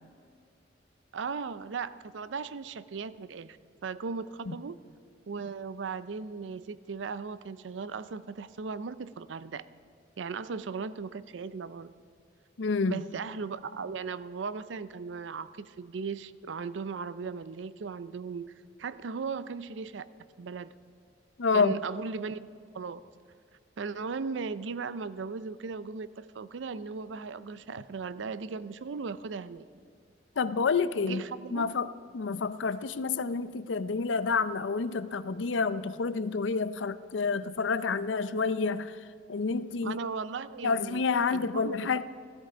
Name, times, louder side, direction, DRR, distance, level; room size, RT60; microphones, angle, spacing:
voice 1, 1.1-3.6 3.8-4.8 5.3-9.7 10.2-11.9 12.9-18.5 18.8-20.1 20.4-20.7 21.5-22.5 22.7-23.0 23.8-29.6 31.0-31.7 39.8-41.0 41.3-41.9, right 5 dB, 80° right, 16 dB, 0.5 m, -37 dB
voice 2, 12.6-13.0 21.4-21.7 30.4-31.2 31.5-31.9 32.1-39.0 39.3-40.0 40.6-42.0, left 4 dB, 90° left, 14 dB, 0.6 m, -28 dB
15.5 x 13.5 x 5.1 m, 2.3 s
head